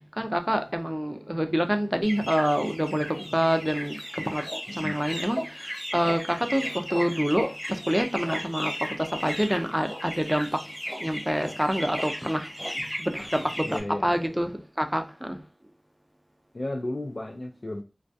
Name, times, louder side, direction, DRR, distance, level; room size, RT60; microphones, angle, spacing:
voice 1, 0.2-4.4 4.8-5.4 5.9-8.7 9.2-10.5 11.0-12.5 13.0-14.5 14.8-15.4, equal, 10° right, 0.4 m, -26 dB
sound 1, 2.0-13.8, equal, 15° left, 1.0 m, -35 dB
voice 2, 4.7-5.0 13.7-14.4 16.5-17.8, left 1 dB, 60° left, 0.3 m, -34 dB
2.2 x 2.2 x 2.5 m
wide cardioid pair, 40°, 0 cm